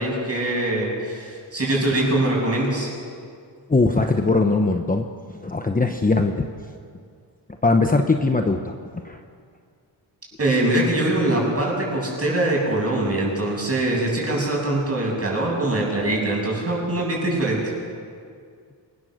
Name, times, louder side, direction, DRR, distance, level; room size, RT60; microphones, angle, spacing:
voice 1, 0.0-2.9 10.4-17.6, right 1 dB, 30° right, -2 dB, 7.9 m, -23 dB
voice 2, 3.7-5.1 5.4-6.5 7.6-8.7 9.0-9.2, left 3 dB, 20° left, 5 dB, 1.0 m, -20 dB
26.0 x 21.5 x 6.6 m, 2.2 s
wide cardioid pair, 115°, 43 cm